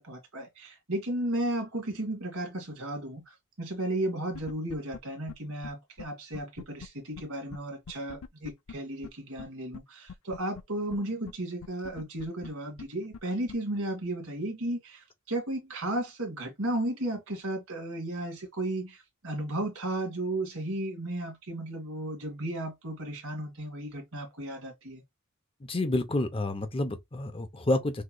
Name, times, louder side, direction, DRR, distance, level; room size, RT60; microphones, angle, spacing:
voice 1, 0.0-25.0, right 1 dB, 70° right, 1.9 m, -34 dB
sound 1, 4.3-5.0 5.3-5.4 5.6-5.7 6.0-6.1 6.3-6.9 7.2-7.3 7.5-7.6 7.9-8.7 9.0-9.1 9.4-9.5 9.7-9.8 10.1-10.6 10.9-11.0 11.3-11.4 11.6-12.5 12.8-12.9 13.1-13.2 13.5-13.6, left 6 dB, 70° left, 0.5 m, -42 dB
voice 2, 25.6-28.0, left 2 dB, 25° left, 0.6 m, -29 dB
6.2 x 3.0 x 2.2 m
head